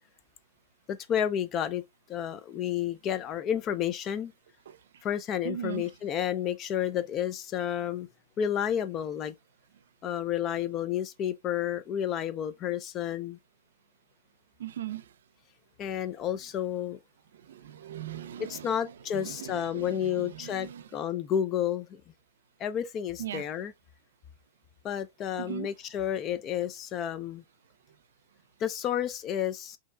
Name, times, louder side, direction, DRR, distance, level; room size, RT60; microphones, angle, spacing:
voice 1, 0.9-1.8 2.1-4.3 5.0-8.1 8.4-9.3 10.0-13.4 15.8-17.0 18.4-22.0 22.6-23.7 24.8-27.4 28.6-29.8, left 9 dB, 30° left, 0.5 m, -31 dB
voice 2, 5.4-5.9 14.6-15.1 17.5-20.9 23.2-23.4 25.4-25.7, right 10 dB, 85° right, 0.5 m, -39 dB
7.3 x 2.8 x 2.2 m
supercardioid pair, 140°, 0 cm